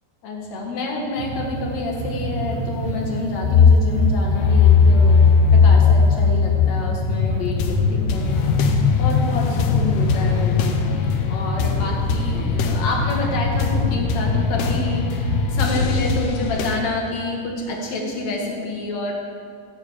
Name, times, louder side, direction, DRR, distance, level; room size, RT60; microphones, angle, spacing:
voice 1, 0.2-8.7 9.0-10.9 11.3-19.1, left 2 dB, 50° left, -1 dB, 2.3 m, -28 dB
sound 1, 1.2-16.2, right 2 dB, 85° right, 1.1 m, -31 dB
sound 2, 3.4-16.2, left 5 dB, 90° left, 2.2 m, -19 dB
sound 3, 4.4-7.2 7.4-16.8, left 4 dB, 75° left, 2.5 m, -28 dB
16.0 x 6.7 x 8.8 m, 2.4 s
omnidirectional pair, 5.5 m